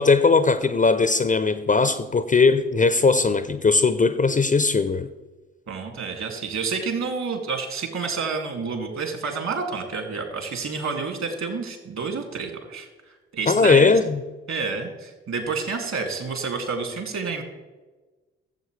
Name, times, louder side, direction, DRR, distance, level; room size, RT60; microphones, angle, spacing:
voice 1, 0.0-5.1 13.5-14.2, left 4 dB, 25° left, 0.6 m, -19 dB
voice 2, 5.7-12.9 13.3-13.9 14.5-17.4, right 4 dB, 55° right, 2.4 m, -29 dB
14.5 x 7.6 x 3.2 m
hypercardioid pair, 45°, 33 cm